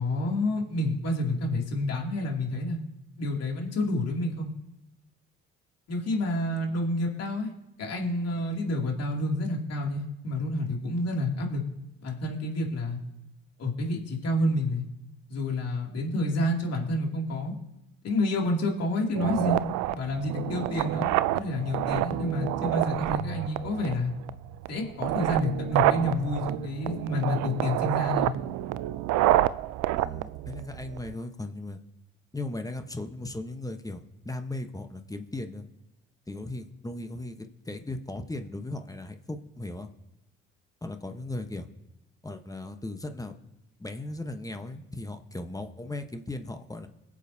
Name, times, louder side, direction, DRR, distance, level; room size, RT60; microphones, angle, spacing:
voice 1, 0.0-2.8 3.2-4.5 5.9-7.5 7.8-11.6 12.0-13.0 13.6-14.8 15.3-17.5 18.0-19.6 19.9-24.1 24.7-28.4, left 1 dB, 60° left, 0 dB, 2.7 m, -29 dB
sound 1, 19.2-31.1, right 15 dB, 75° right, 0.5 m, -28 dB
voice 2, 30.0-31.8 32.3-35.7 36.3-39.9 40.8-41.7 42.2-43.4 43.8-46.9, left 2 dB, 10° left, 7 dB, 1.1 m, -37 dB
22.0 x 7.5 x 2.8 m, 0.91 s
supercardioid pair, 60°, 29 cm